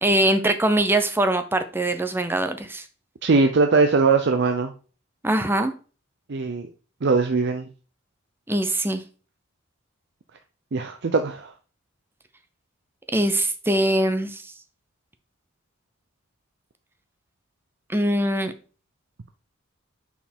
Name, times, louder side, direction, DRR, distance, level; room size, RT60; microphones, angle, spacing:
voice 1, 0.0-2.8 5.2-5.7 8.5-9.0 13.1-14.5 17.9-18.5, right 1 dB, 10° right, 9 dB, 0.6 m, -22 dB
voice 2, 3.2-4.7 6.3-6.7 7.0-7.7 10.7-11.5, right 4 dB, 55° right, 6 dB, 0.5 m, -20 dB
5.7 x 4.4 x 4.3 m, 0.36 s
head